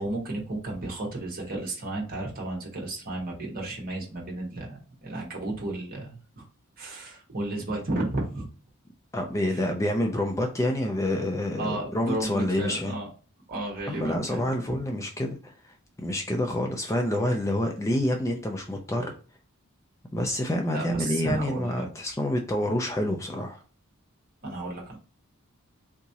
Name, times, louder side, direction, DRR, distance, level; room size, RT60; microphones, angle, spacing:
voice 1, 0.0-6.4 6.8-8.5 9.5-9.6 11.6-13.1 13.5-14.8 20.7-21.9 24.4-25.0, right 2 dB, 40° right, 1.1 m, -33 dB
voice 2, 9.1-12.9 13.9-19.1 20.1-23.6, left 1 dB, 15° left, 0.3 m, -28 dB
3.5 x 2.9 x 2.7 m
head